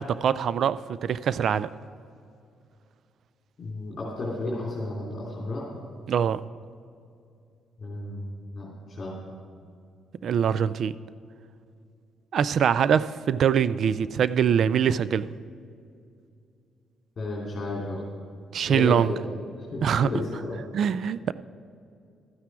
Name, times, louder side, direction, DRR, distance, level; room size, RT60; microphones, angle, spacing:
voice 1, 0.0-1.7 6.1-6.4 10.2-10.9 12.3-15.3 18.5-19.1 19.8-20.1 20.7-21.3, right 8 dB, 60° right, 16 dB, 0.3 m, -23 dB
voice 2, 3.6-5.6 7.8-9.2 17.2-18.0 18.7-19.2 19.7-20.6, left 2 dB, 40° left, -5 dB, 3.1 m, -33 dB
12.5 x 9.5 x 4.8 m, 2.4 s
cardioid pair, 90°, 0 cm